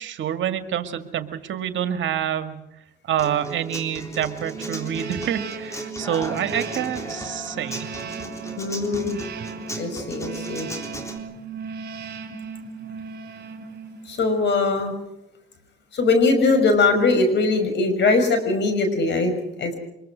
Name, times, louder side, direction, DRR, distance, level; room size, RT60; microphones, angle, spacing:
voice 1, 0.0-2.6 3.1-7.9, right 10 dB, 70° right, 9 dB, 1.9 m, -27 dB
Human voice / Acoustic guitar, 3.2-11.2, equal, 15° left, 3.6 m, -36 dB
sound 1, 4.4-14.3, right 5 dB, 55° right, 3.3 m, -36 dB
voice 2, 8.6-9.2 9.8-10.7 14.0-14.9 15.9-19.7, left 3 dB, 65° left, 8 dB, 5.9 m, -21 dB
24.5 x 22.0 x 6.3 m, 0.84 s
cardioid pair, 90°, 20 cm